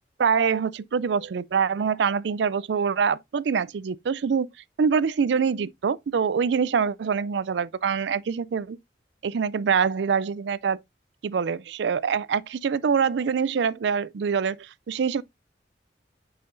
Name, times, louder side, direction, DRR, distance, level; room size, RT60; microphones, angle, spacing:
voice 1, 0.2-4.5 4.8-8.8 9.2-10.8 11.2-15.2, right 6 dB, 70° right, 0.4 m, -25 dB
8.6 x 5.6 x 2.6 m
head